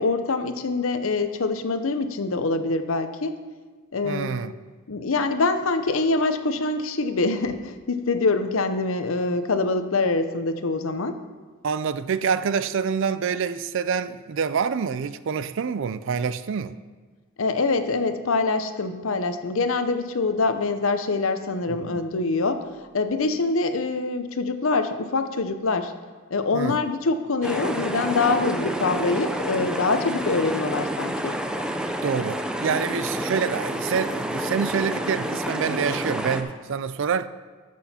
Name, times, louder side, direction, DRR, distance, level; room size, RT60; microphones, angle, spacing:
voice 1, 0.0-3.3 3.9-4.4 4.9-11.2 17.4-25.9 26.3-31.3, left 3 dB, 70° left, 0.7 m, -24 dB
voice 2, 4.0-4.5 11.6-16.8 21.7-22.0 26.5-26.8 32.0-37.3, right 6 dB, 60° right, 0.4 m, -26 dB
sound 1, 27.4-36.4, equal, 5° right, 0.6 m, -29 dB
13.5 x 6.3 x 4.3 m
head